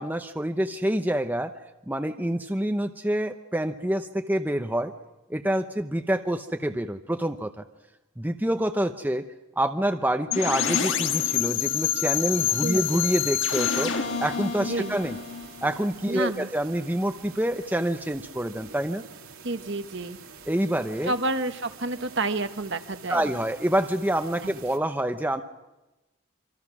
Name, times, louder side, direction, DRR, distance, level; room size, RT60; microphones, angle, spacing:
voice 1, 0.0-1.5 1.9-4.9 5.3-7.6 8.2-9.3 9.6-15.2 15.6-19.0 20.5-21.1 23.1-25.4, right 1 dB, 10° right, 6 dB, 0.8 m, -27 dB
sound 1, 10.3-16.1, left 8 dB, 60° left, 1.7 m, -27 dB
sound 2, 12.3-24.8, right 5 dB, 90° right, 2.6 m, -47 dB
voice 2, 12.6-13.0 14.7-14.9 16.1-16.5 19.4-20.2 21.1-23.3 24.4-24.5, right 2 dB, 55° right, 8 dB, 1.3 m, -29 dB
26.5 x 25.5 x 6.1 m, 1.0 s
head